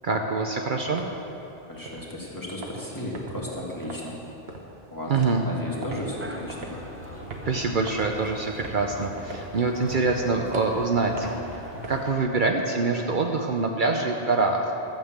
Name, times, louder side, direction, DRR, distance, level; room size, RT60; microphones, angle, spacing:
voice 1, 0.0-1.0 5.1-5.4 7.5-11.6 11.9-14.7, right 3 dB, 55° right, 2 dB, 0.9 m, -25 dB
sound 1, 0.6-12.0, right 2 dB, 75° right, 1.4 m, -42 dB
voice 2, 1.7-4.1 4.9-5.1 5.4-6.7, left 1 dB, 20° left, -5 dB, 2.2 m, -34 dB
sound 2, 6.1-12.3, right 1 dB, 15° right, 0.7 m, -45 dB
sound 3, 6.4-12.1, left 4 dB, 60° left, 0.9 m, -44 dB
12.5 x 7.3 x 7.3 m, 2.9 s
omnidirectional pair, 1.0 m